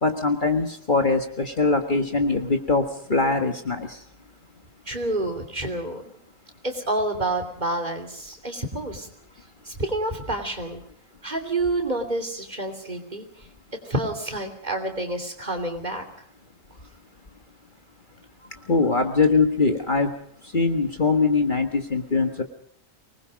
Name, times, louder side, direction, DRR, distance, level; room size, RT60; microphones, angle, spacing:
voice 1, 0.0-2.8 3.1-4.0 18.7-20.1 20.5-22.4, left 3 dB, 40° left, 5 dB, 1.7 m, -22 dB
voice 2, 4.9-6.1 6.6-9.1 9.6-10.8 11.2-13.2 13.8-16.0, right 2 dB, 35° right, 5 dB, 3.2 m, -28 dB
25.0 x 20.0 x 5.2 m, 0.65 s
omnidirectional pair, 1.4 m